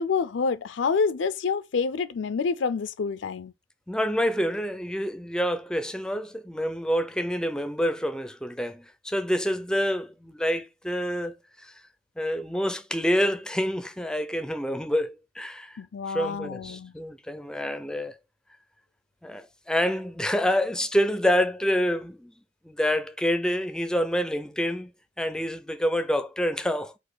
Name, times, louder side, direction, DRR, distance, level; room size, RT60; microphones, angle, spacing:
voice 1, 0.0-3.5 15.8-16.9, left 5 dB, 85° left, 0.4 m, -27 dB
voice 2, 3.9-11.7 12.2-18.2 19.2-22.3 22.6-24.9 25.2-26.9, equal, 5° left, 0.4 m, -27 dB
4.0 x 2.5 x 4.7 m
head